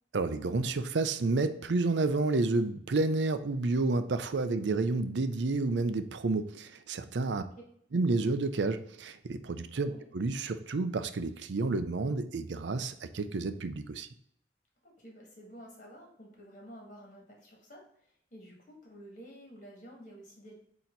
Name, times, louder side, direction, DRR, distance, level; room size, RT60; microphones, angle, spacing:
voice 1, 0.1-7.4 7.9-14.1, right 3 dB, 90° right, 11 dB, 0.5 m, -30 dB
voice 2, 4.6-4.9 9.8-10.0 14.8-20.5, equal, 45° left, -1 dB, 2.2 m, -51 dB
8.7 x 2.9 x 3.9 m, 0.68 s
head